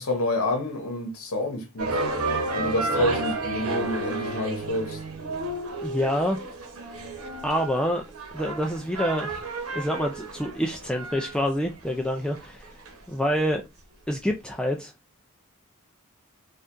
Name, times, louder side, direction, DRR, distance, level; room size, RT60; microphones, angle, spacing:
voice 1, 0.0-2.0 2.5-5.0, left 1 dB, 75° left, 0.9 m, -28 dB
sound 1, 1.8-13.0, right 2 dB, 80° right, 1.0 m, -32 dB
voice 2, 5.8-6.4 7.4-8.0 8.3-9.4 9.7-12.7 13.1-13.6 14.1-14.9, equal, 5° left, 0.3 m, -27 dB
4.5 x 2.5 x 2.5 m
head